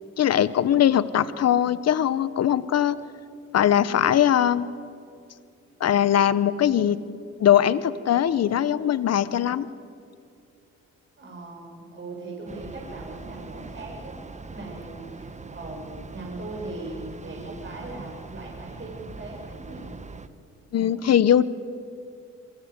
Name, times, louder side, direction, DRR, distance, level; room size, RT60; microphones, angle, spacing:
voice 1, 0.2-3.0 3.5-4.7 5.8-7.0 7.4-9.7 20.7-21.4, left 10 dB, 55° left, 15 dB, 1.2 m, -21 dB
voice 2, 11.2-14.1 14.5-20.0 20.7-20.9, right 2 dB, 40° right, -1 dB, 8.0 m, -39 dB
Train, 12.5-20.3, right 3 dB, 25° right, 1.4 m, -41 dB
28.5 x 23.5 x 8.4 m, 2.4 s
cardioid pair, 90°, 30 cm